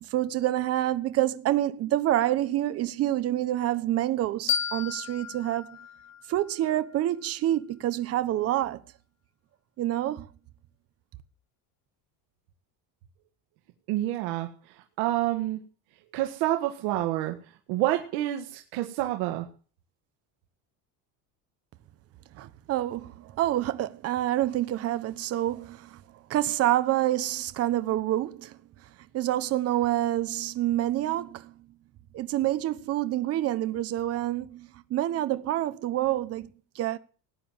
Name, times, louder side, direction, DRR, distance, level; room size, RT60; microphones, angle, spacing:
voice 1, 0.0-5.8 6.3-8.8 9.8-10.3 22.3-26.0 26.3-28.6 29.1-31.6 32.1-36.5 36.7-37.0, right 13 dB, 40° right, 1.1 m, -27 dB
sound 1, 4.5-7.3, left 9 dB, 45° left, 0.8 m, -34 dB
voice 2, 13.9-15.6 16.1-17.4 17.7-19.5, right 15 dB, 85° right, 1.9 m, -28 dB
18.5 x 9.3 x 7.4 m
cardioid pair, 175°, 38 cm